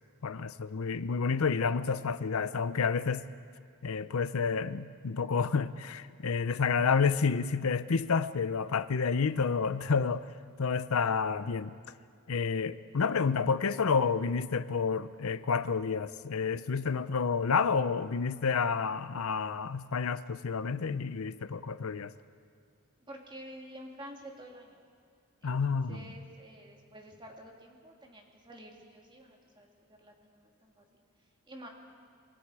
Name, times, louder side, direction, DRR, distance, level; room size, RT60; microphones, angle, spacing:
voice 1, 0.2-3.2 3.8-10.3 10.6-11.7 12.3-22.1 25.4-25.9, left 5 dB, 80° left, 0.6 m, -29 dB
voice 2, 23.0-24.8 25.4-30.9 31.5-31.7, right 1 dB, 20° right, 2.4 m, -49 dB
26.0 x 22.5 x 4.8 m
head